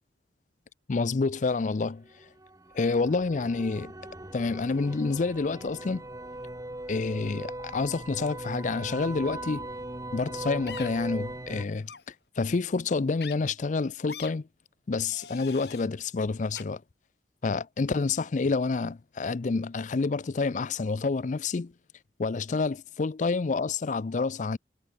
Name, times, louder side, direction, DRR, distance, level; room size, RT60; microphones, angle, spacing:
voice 1, 0.9-2.0 2.7-3.9 4.3-6.0 6.9-9.7 10.1-11.9 12.4-14.5 14.9-16.8 17.4-21.7 22.2-24.6, left 4 dB, 45° left, 0.5 m, -28 dB
sound 1, 1.9-11.6, right 1 dB, 20° right, 1.9 m, -40 dB
sound 2, 10.7-10.9 11.8-12.0 13.2-13.3 14.1-14.3 15.0-15.9 16.5-16.6, left 6 dB, 65° left, 4.7 m, -42 dB
head